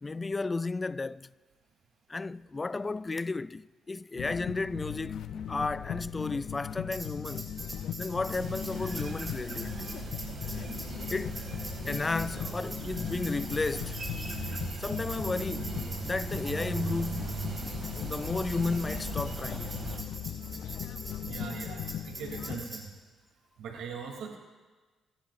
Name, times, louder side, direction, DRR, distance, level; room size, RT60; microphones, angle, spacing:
voice 1, 0.0-1.3 2.1-7.5 8.0-9.9 11.1-11.4 11.9-14.0 14.8-17.4 18.0-19.7, left 3 dB, 25° left, 0.3 m, -33 dB
sound 1, 4.2-22.6, left 10 dB, 70° left, 0.6 m, -38 dB
Tambourine, 6.9-22.8, right 1 dB, 15° right, 3.7 m, -44 dB
sound 2, 8.3-20.0, right 5 dB, 45° right, 2.4 m, -39 dB
voice 2, 21.2-22.8 23.6-24.4, right 6 dB, 80° right, 3.1 m, -40 dB
28.0 x 13.0 x 2.7 m
cardioid pair, 90°, 0 cm